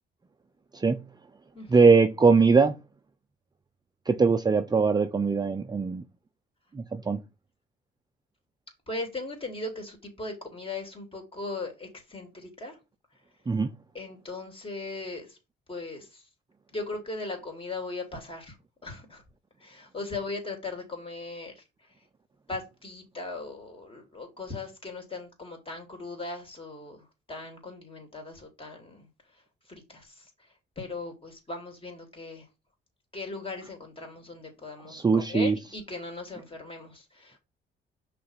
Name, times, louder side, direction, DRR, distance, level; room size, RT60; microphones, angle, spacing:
voice 1, 0.7-1.1 1.7-2.7 4.1-6.0 6.7-7.2 13.5-13.7 34.9-35.6, right 4 dB, 20° right, 0.6 m, -21 dB
voice 2, 8.9-12.8 13.9-15.4 15.7-16.2 16.7-18.6 18.8-19.2 19.6-21.6 22.5-29.1 29.7-30.3 30.8-32.5 33.1-37.4, left 3 dB, 25° left, 3.0 m, -38 dB
5.7 x 3.4 x 5.7 m
cardioid pair, 90°, 20 cm